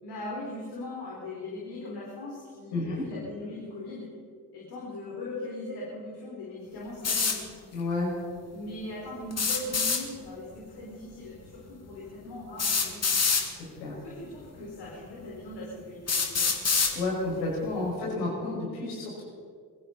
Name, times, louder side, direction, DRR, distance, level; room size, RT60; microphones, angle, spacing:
voice 1, 0.0-4.1 4.5-7.6 8.5-13.1 14.0-16.5, left 2 dB, 55° left, -5 dB, 4.5 m, -40 dB
voice 2, 2.7-3.0 7.7-8.1 13.8-13.9 16.9-19.2, left 2 dB, 75° left, -3 dB, 5.7 m, -30 dB
sound 1, 7.0-7.4 9.3-10.0 11.5-11.6 12.6-13.5 14.5-14.6 15.2-15.3 16.1-16.9, left 5 dB, 35° left, 2.3 m, -25 dB
22.5 x 15.0 x 4.1 m, 2.2 s
figure-of-eight pair, 45°, 46 cm